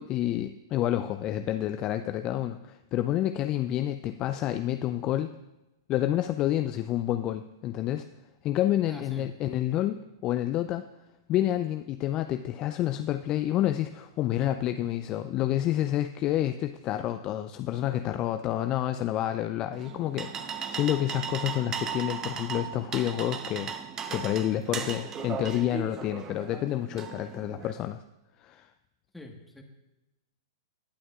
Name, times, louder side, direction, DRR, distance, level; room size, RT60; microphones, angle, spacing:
voice 1, 0.0-5.3 5.9-8.1 8.4-10.8 11.3-23.7 24.1-28.0 28.4-28.7, left 13 dB, 35° left, 9 dB, 0.4 m, -29 dB
voice 2, 8.9-9.3 29.1-29.6, left 1 dB, 5° left, 1 dB, 1.4 m, -45 dB
sound 1, 19.7-27.7, right 7 dB, 25° right, 0.9 m, -37 dB
19.5 x 8.7 x 2.4 m, 0.98 s
figure-of-eight pair, 105°, 2 cm